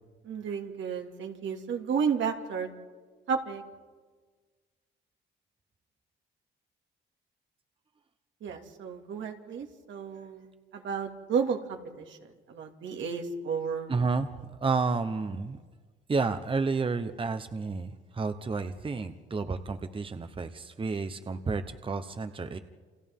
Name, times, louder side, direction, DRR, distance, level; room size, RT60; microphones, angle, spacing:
voice 1, 0.2-2.7 3.3-3.6 8.4-10.5 10.7-12.2 12.5-13.9, right 6 dB, 70° right, 3 dB, 2.5 m, -32 dB
voice 2, 13.9-15.6 16.1-22.6, right 4 dB, 25° right, 9 dB, 1.0 m, -31 dB
29.5 x 27.0 x 3.7 m, 1.4 s
cardioid pair, 90°, 20 cm